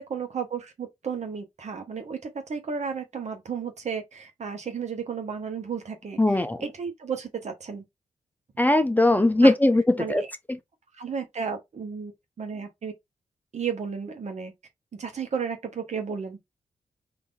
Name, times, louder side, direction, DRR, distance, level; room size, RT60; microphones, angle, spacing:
voice 1, 0.0-7.8 9.4-9.5 10.0-10.3 11.0-12.1 12.4-12.9 13.5-14.5 14.9-16.4, right 6 dB, 60° right, 1.1 m, -33 dB
voice 2, 6.2-6.6 8.6-10.2, left 1 dB, 10° left, 0.7 m, -20 dB
3.6 x 2.8 x 2.5 m
supercardioid pair, 45°, 14 cm